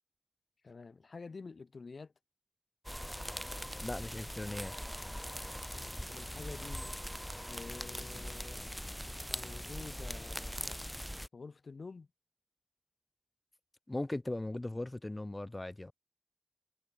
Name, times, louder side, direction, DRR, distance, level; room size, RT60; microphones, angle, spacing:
voice 1, 0.6-2.1 5.7-7.0 7.4-8.7 9.2-10.8 11.3-12.1, left 4 dB, 85° left, 3.1 m, -49 dB
sound 1, 2.8-11.3, equal, 5° left, 1.4 m, -41 dB
voice 2, 3.8-4.7 13.9-15.9, left 2 dB, 30° left, 2.9 m, -38 dB
wide cardioid pair, 55°, 0 cm